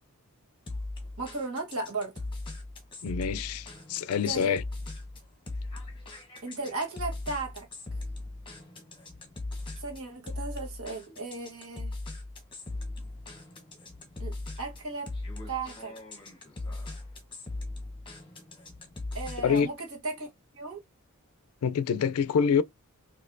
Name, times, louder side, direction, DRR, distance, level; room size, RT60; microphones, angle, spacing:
sound 1, 0.7-19.7, left 2 dB, 25° left, 0.9 m, -39 dB
voice 1, 1.2-2.1 4.2-4.6 6.4-7.7 9.8-11.9 14.2-15.1 15.5-15.9 19.1-20.3 20.5-20.8, right 3 dB, 70° right, 1.3 m, -36 dB
voice 2, 3.0-4.6 19.4-19.7 21.6-22.6, left 6 dB, 75° left, 0.4 m, -26 dB
4.2 x 2.7 x 2.6 m
head